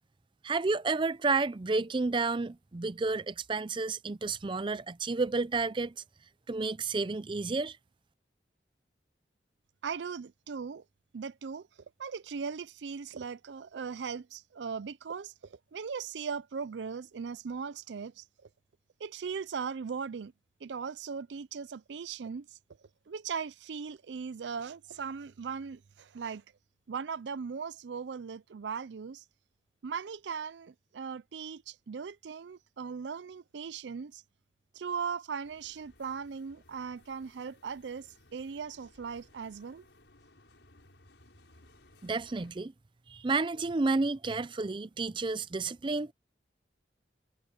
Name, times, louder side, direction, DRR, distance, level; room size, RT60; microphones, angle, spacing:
voice 1, 0.4-5.9 6.5-7.8 42.0-42.7 43.1-46.1, right 3 dB, 30° right, 0.5 m, -31 dB
voice 2, 9.8-10.8 11.1-11.7 12.0-15.3 15.7-18.2 19.0-20.3 20.6-22.5 23.1-26.4 26.9-29.2 29.8-34.2 34.8-38.1 38.3-39.8, right 6 dB, 80° right, 0.5 m, -38 dB
sound 1, 35.4-42.5, left 2 dB, 85° left, 5.8 m, -61 dB
head